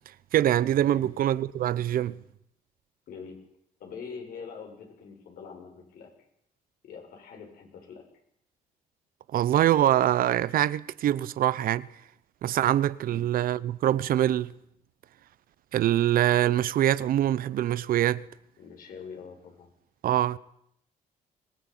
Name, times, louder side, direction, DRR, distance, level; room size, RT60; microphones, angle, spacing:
voice 1, 0.3-2.2 9.3-11.9 12.4-14.5 15.7-18.2 20.0-20.4, right 12 dB, 70° right, 0.9 m, -24 dB
voice 2, 3.1-3.4 3.8-6.1 6.8-8.0 13.1-13.3 18.6-19.7, left 6 dB, 75° left, 7.4 m, -44 dB
25.0 x 19.0 x 9.1 m
cardioid pair, 90°, 15 cm